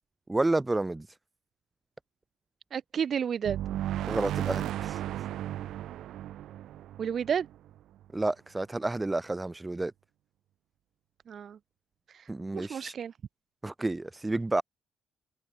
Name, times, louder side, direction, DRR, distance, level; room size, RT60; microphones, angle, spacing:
voice 1, 0.3-1.2 4.1-5.0 8.1-9.9 12.3-12.9 13.6-14.6, right 2 dB, 15° right, 1.3 m, -30 dB
voice 2, 2.7-3.6 7.0-7.5 11.3-11.6 12.1-12.2 12.5-13.1, right 8 dB, 55° right, 0.3 m, -31 dB
sound 1, 3.4-8.0, right 12 dB, 80° right, 1.1 m, -35 dB
cardioid pair, 90°, 0 cm